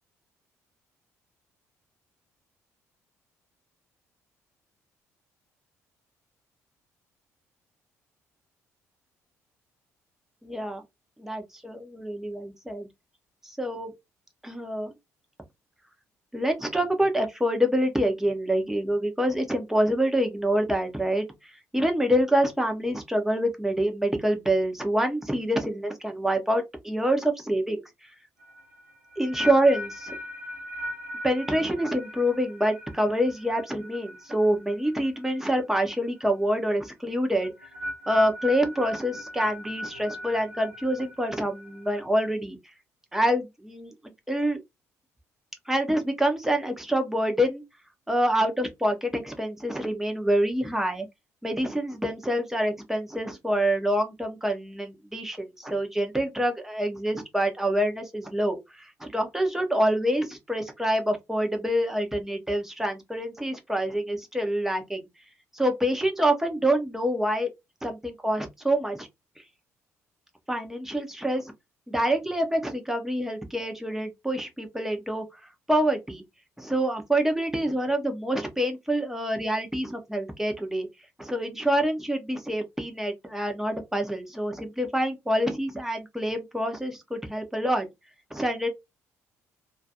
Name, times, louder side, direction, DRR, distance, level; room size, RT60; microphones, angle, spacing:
voice 1, 10.4-10.8 11.2-12.9 13.4-13.9 14.4-14.9 16.3-27.8 29.2-30.2 31.2-37.5 38.1-42.6 43.1-44.6 45.7-47.6 48.1-51.1 51.4-65.0 65.5-67.5 67.8-69.1 70.5-71.5 71.9-75.2 75.7-76.2 76.6-80.9 81.2-87.9 88.3-88.7, right 1 dB, 5° right, 0.8 m, -26 dB
sound 1, 28.4-35.5 35.8-36.2 37.4-42.0, left 1 dB, 90° right, 0.7 m, -39 dB
2.4 x 2.4 x 2.6 m
figure-of-eight pair, 45°, 8 cm